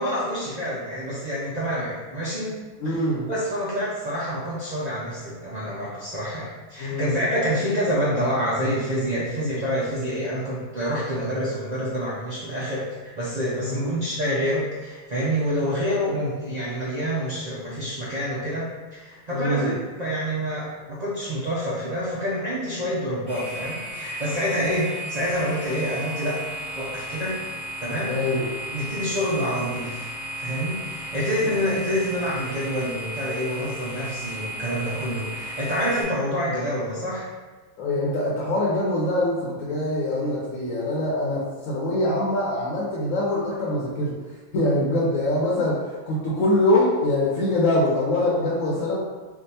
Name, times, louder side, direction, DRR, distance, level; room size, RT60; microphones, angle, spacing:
voice 1, 0.0-2.5 2.8-12.8 13.2-18.7 18.9-27.4 27.8-28.1 28.7-30.1 30.4-37.3, equal, 80° right, -8 dB, 0.3 m, -27 dB
voice 2, 2.8-3.3 6.8-7.2 13.6-13.9 19.3-19.8 28.1-28.5 37.8-44.1 44.5-45.8 46.1-49.0, left 1 dB, 70° left, -5 dB, 1.0 m, -23 dB
sound 1, 23.3-36.0, right 1 dB, 35° left, 1.0 m, -34 dB
3.5 x 2.4 x 2.7 m, 1.3 s
omnidirectional pair, 1.5 m